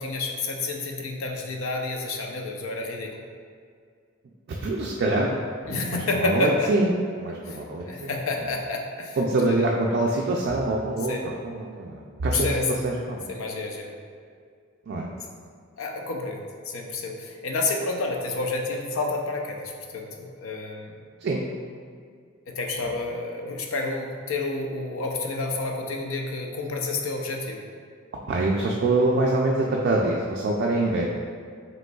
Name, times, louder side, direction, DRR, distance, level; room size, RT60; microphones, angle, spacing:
voice 1, 0.0-3.2 5.7-6.7 7.4-9.2 9.5-9.7 11.1-11.3 12.2-12.8 13.3-13.9 15.8-20.9 22.5-27.6, left 3 dB, 80° left, 2 dB, 0.5 m, -29 dB
voice 2, 4.6-6.9 7.2-8.1 9.2-12.5 12.8-13.3 14.9-15.1 21.2-21.4 28.3-31.1, right 2 dB, 50° right, -2 dB, 0.3 m, -25 dB
5.1 x 3.1 x 2.3 m, 2.2 s
head